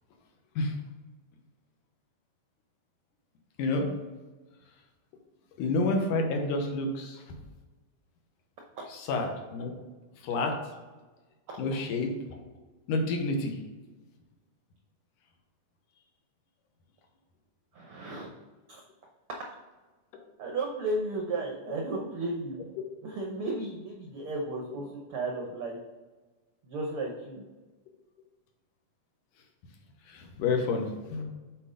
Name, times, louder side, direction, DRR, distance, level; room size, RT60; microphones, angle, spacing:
voice 1, 3.6-3.9 5.6-7.2 8.9-9.7 10.2-10.6 11.6-12.1 12.9-13.6 30.1-31.2, left 3 dB, 85° left, 3 dB, 2.5 m, -29 dB
voice 2, 17.7-18.3 18.7-18.8 20.4-22.6 23.0-25.8 26.6-27.4, right 2 dB, 80° right, 0 dB, 1.2 m, -34 dB
7.8 x 4.2 x 3.8 m, 1.2 s
omnidirectional pair, 3.5 m